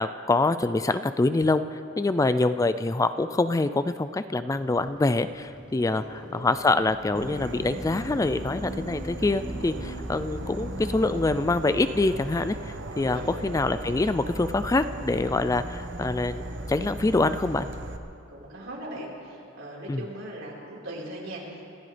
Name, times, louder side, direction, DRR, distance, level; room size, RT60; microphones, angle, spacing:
voice 1, 0.0-17.7 19.9-20.0, left 2 dB, 15° left, 12 dB, 0.3 m, -25 dB
Motorcycle / Idling, 4.5-14.4, equal, 20° right, 1.4 m, -49 dB
voice 2, 5.8-6.5 13.1-13.4 18.3-21.7, right 1 dB, 75° right, -5 dB, 4.4 m, -39 dB
sound 1, 6.6-13.7, equal, 75° left, 2.5 m, -40 dB
Insect / Frog, 7.1-18.0, right 1 dB, 60° right, 1.0 m, -38 dB
27.0 x 15.0 x 3.4 m, 2.6 s
head